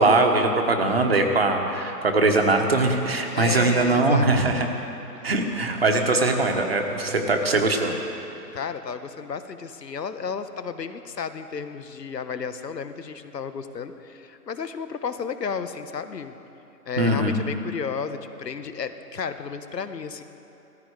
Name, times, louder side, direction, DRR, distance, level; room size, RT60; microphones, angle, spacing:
voice 1, 0.0-4.7 5.2-7.9 17.0-17.4, right 2 dB, 40° right, 4 dB, 1.3 m, -21 dB
voice 2, 3.3-4.7 8.5-16.3 16.9-20.2, left 6 dB, 80° left, 10 dB, 1.1 m, -32 dB
16.5 x 14.5 x 4.8 m, 2.8 s
hypercardioid pair, 175°, 49 cm